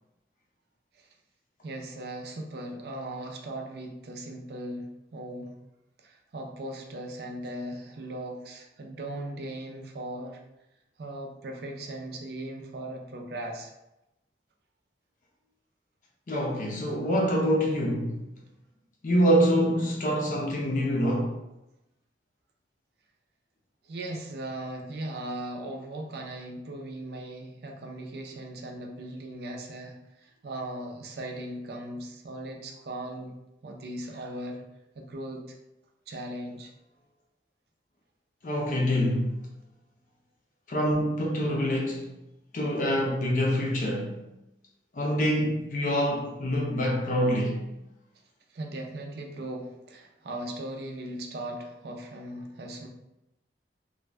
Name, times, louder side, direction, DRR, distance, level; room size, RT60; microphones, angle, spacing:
voice 1, 1.6-5.6 6.0-10.4 11.0-13.7 23.8-33.4 33.6-34.6 35.0-35.6 36.1-36.7 48.5-52.9, right 1 dB, 65° right, 0.5 m, -38 dB
voice 2, 16.3-18.2 19.0-21.3 38.4-39.3 40.7-42.1 42.5-44.1 44.9-47.6, equal, 45° left, 0.5 m, -25 dB
2.5 x 2.2 x 3.2 m
head